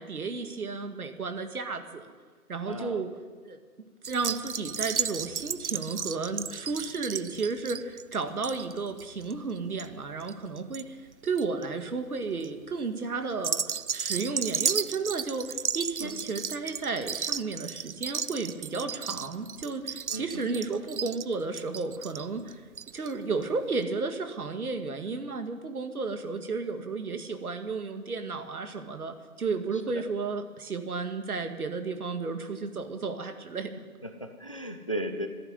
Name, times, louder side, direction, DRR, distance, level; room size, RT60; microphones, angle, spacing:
voice 1, 0.0-2.1 2.5-3.1 3.4-3.6 4.0-11.0 11.2-13.6 13.9-22.6 22.9-33.7, right 4 dB, 70° right, 7 dB, 2.1 m, -33 dB
voice 2, 2.7-3.0 16.0-16.1 20.1-20.6 34.0-35.3, right 1 dB, 20° left, 7 dB, 0.5 m, -36 dB
sound 1, 4.0-10.8 11.1-11.6 12.2-12.5 13.3-23.1 23.4-23.5 23.7-23.8, right 7 dB, 50° right, 0.5 m, -34 dB
13.5 x 11.0 x 9.5 m, 1.5 s
figure-of-eight pair, 160°, 46 cm